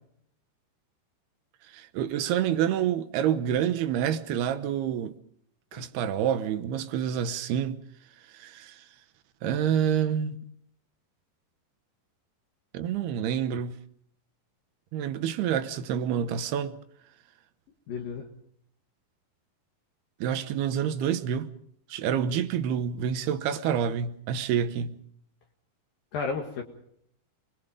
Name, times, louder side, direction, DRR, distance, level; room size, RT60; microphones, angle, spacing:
voice 1, 1.7-5.1 5.7-7.8 8.3-8.8 9.4-10.4 12.7-13.8 14.9-16.8 20.2-21.5 21.9-25.0, right 9 dB, 90° right, 3.1 m, -28 dB
voice 2, 17.9-18.2 26.1-26.6, left 5 dB, 65° left, 3.4 m, -32 dB
28.0 x 21.0 x 5.2 m
omnidirectional pair, 4.5 m